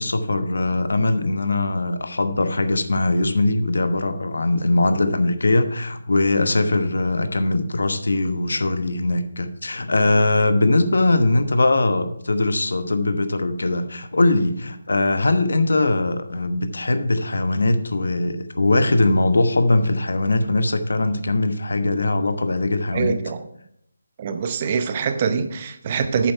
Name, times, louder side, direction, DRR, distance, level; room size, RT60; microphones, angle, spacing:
voice 1, 0.0-23.2, left 2 dB, 80° left, 9 dB, 1.0 m, -21 dB
voice 2, 22.9-23.5 24.2-26.3, right 6 dB, 30° right, 9 dB, 0.7 m, -24 dB
8.7 x 7.2 x 4.5 m, 0.72 s
figure-of-eight pair, 165°, 0 cm